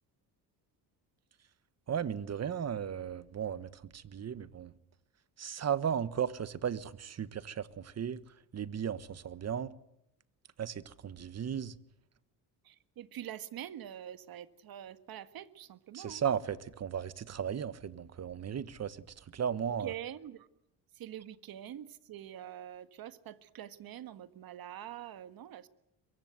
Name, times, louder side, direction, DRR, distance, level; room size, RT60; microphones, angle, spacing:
voice 1, 1.9-4.7 5.4-8.2 8.5-9.7 10.6-11.7 15.9-19.9, right 8 dB, 40° right, 1.4 m, -35 dB
voice 2, 12.6-16.2 19.5-20.5 20.9-25.7, right 11 dB, 60° right, 1.7 m, -45 dB
23.5 x 23.0 x 8.1 m
cardioid pair, 95°, 41 cm